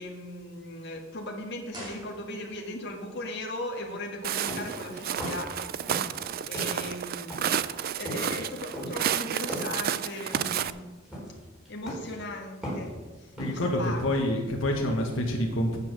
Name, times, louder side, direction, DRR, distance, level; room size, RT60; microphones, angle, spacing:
voice 1, 0.0-5.8 6.4-7.6 7.9-10.9 11.7-14.3, left 1 dB, 60° left, 1 dB, 1.6 m, -38 dB
sound 1, 1.7-2.8 3.0-3.1, right 1 dB, 25° right, 3.1 m, -44 dB
Walk footsteps, 4.2-10.7, right 9 dB, 50° right, 0.4 m, -31 dB
sound 2, 4.5-6.2 6.5-13.7, equal, 5° right, 4.2 m, -38 dB
voice 2, 13.4-15.8, left 1 dB, 80° left, 0 dB, 1.5 m, -27 dB
8.9 x 8.5 x 6.1 m, 1.3 s
head